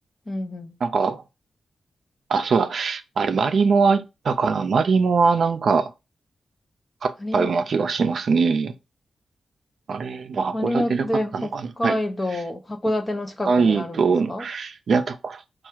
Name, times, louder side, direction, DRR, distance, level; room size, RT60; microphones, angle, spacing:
voice 1, 0.3-0.8 7.2-7.5 10.5-11.5 11.8-14.5, left 1 dB, 15° left, 0.7 m, -27 dB
voice 2, 0.8-1.2 2.3-5.9 7.0-8.7 9.9-12.0 13.5-15.4, right 5 dB, 50° right, 0.5 m, -22 dB
4.6 x 2.3 x 4.5 m
wide cardioid pair, 175°, 0 cm